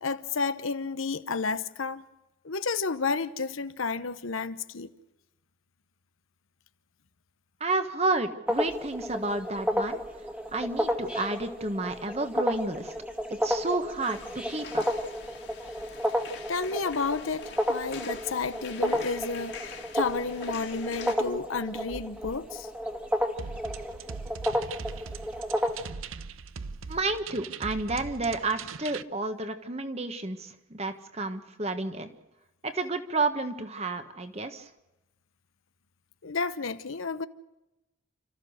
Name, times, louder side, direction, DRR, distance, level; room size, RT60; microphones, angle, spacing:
voice 1, 0.0-2.0 2.4-4.9 16.5-22.7 36.2-37.3, left 4 dB, 90° left, 1.0 m, -31 dB
voice 2, 7.6-10.0 10.5-12.9 13.4-14.8 26.9-32.1 32.6-34.6, right 3 dB, 30° right, 1.4 m, -31 dB
sound 1, 8.5-25.9, equal, 5° right, 1.7 m, -31 dB
sound 2, 14.0-21.1, left 6 dB, 55° left, 2.4 m, -45 dB
sound 3, 23.4-29.0, right 5 dB, 85° right, 0.7 m, -40 dB
29.5 x 14.0 x 6.5 m
head